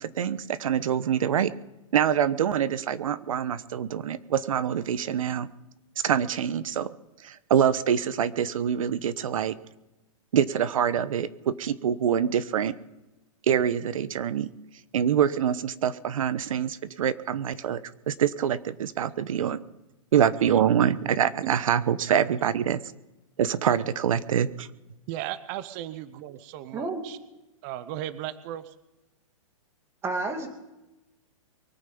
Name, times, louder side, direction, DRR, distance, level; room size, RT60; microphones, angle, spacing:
voice 1, 0.0-1.5 1.9-5.5 6.0-6.9 7.2-9.6 10.3-12.7 13.5-14.5 14.9-17.8 18.1-19.6 20.1-22.8 23.4-24.7, right 9 dB, 70° right, 16 dB, 1.0 m, -25 dB
voice 2, 25.1-27.2 27.6-28.7, right 13 dB, 30° right, 15 dB, 0.7 m, -36 dB
voice 3, 26.7-27.1 30.0-30.5, right 3 dB, 15° right, 5 dB, 2.2 m, -30 dB
23.5 x 9.1 x 5.4 m, 1.0 s
hypercardioid pair, 155°, 18 cm